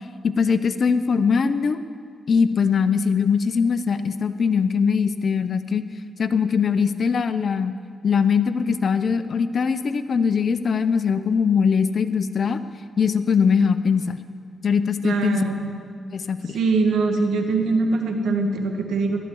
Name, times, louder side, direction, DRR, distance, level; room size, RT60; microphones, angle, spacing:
voice 1, 0.2-1.8 2.3-5.8 6.2-7.7 8.0-12.6 13.0-14.2 14.6-15.4 16.1-16.6, left 6 dB, 55° left, 11 dB, 0.7 m, -21 dB
voice 2, 15.0-15.7 16.5-19.2, right 3 dB, 90° right, 4 dB, 1.6 m, -22 dB
18.0 x 12.5 x 4.7 m, 2.1 s
cardioid pair, 90°, 0 cm